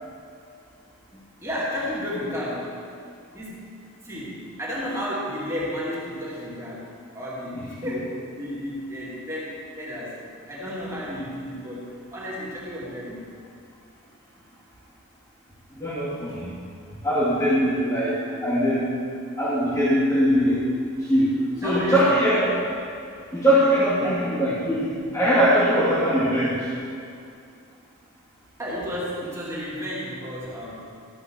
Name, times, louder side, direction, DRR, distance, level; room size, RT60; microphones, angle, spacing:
voice 1, 1.4-2.8 3.3-13.3 16.2-16.7 21.6-22.2 24.0-24.3 28.6-30.9, equal, 15° right, -8 dB, 2.6 m, -33 dB
voice 2, 7.5-7.9 15.7-16.5 17.0-18.9 19.4-20.6 21.0-22.5 23.3-26.6, equal, 15° left, -10 dB, 2.4 m, -21 dB
13.5 x 5.9 x 6.3 m, 2.4 s
head